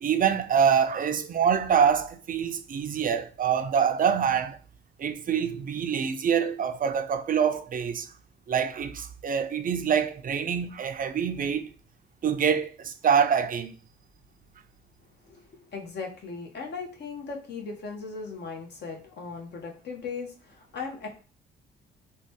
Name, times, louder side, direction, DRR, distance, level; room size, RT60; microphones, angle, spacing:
voice 1, 0.0-4.6 5.0-8.1 8.5-11.7 12.2-13.7, right 7 dB, 45° right, 0.5 m, -25 dB
voice 2, 15.7-21.2, left 4 dB, 60° left, 1.2 m, -38 dB
3.1 x 2.3 x 4.2 m
cardioid pair, 90°, 20 cm